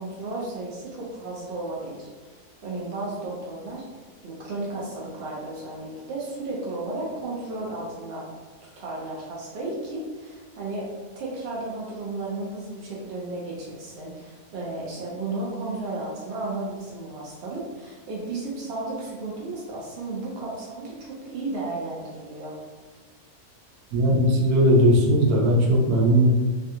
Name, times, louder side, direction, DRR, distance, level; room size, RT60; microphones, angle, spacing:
voice 1, 0.0-2.1 2.6-4.0 4.2-8.2 8.6-10.8 11.2-22.5, right 2 dB, 60° right, -5 dB, 0.7 m, -33 dB
voice 2, 23.9-26.3, equal, 80° right, -3 dB, 1.1 m, -18 dB
3.2 x 2.3 x 2.7 m, 1.3 s
omnidirectional pair, 1.6 m